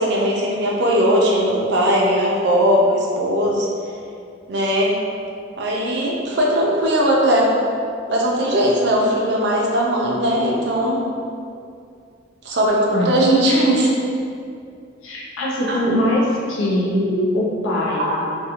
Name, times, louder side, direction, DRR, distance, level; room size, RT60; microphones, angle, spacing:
voice 1, 0.0-3.7 4.5-5.0 5.6-7.5 8.1-11.0 12.4-13.9 15.7-16.1 16.9-17.4 17.6-18.3, equal, 60° right, -3 dB, 0.4 m, -19 dB
voice 2, 15.0-16.2 16.5-17.0 17.3-18.1, left 1 dB, 85° left, -4 dB, 0.4 m, -22 dB
2.4 x 2.2 x 2.8 m, 2.4 s
head